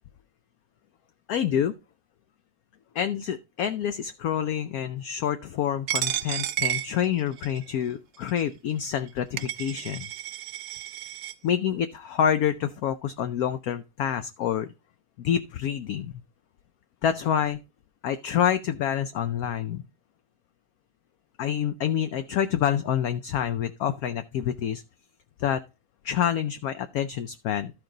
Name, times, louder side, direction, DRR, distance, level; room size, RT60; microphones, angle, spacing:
voice 1, 1.3-1.8 2.9-10.1 11.4-14.7 15.2-16.2 17.0-17.6 18.0-19.8 21.4-24.8 25.4-25.6 26.0-27.7, left 9 dB, 70° left, 10 dB, 1.0 m, -27 dB
Coin (dropping), 5.9-7.6 8.3-8.4 9.1-9.2 9.4-11.3, right 12 dB, 70° right, 1.1 m, -31 dB
13.0 x 4.6 x 3.8 m, 0.28 s
omnidirectional pair, 1.9 m